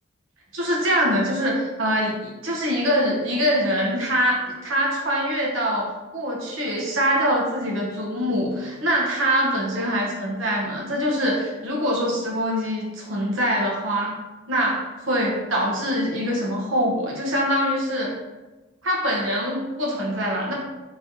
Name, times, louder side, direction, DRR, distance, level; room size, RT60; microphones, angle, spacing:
voice 1, 0.5-14.1 14.5-18.1 18.8-20.5, equal, 90° right, -3 dB, 0.9 m, -24 dB
3.1 x 2.7 x 3.8 m, 1.2 s
head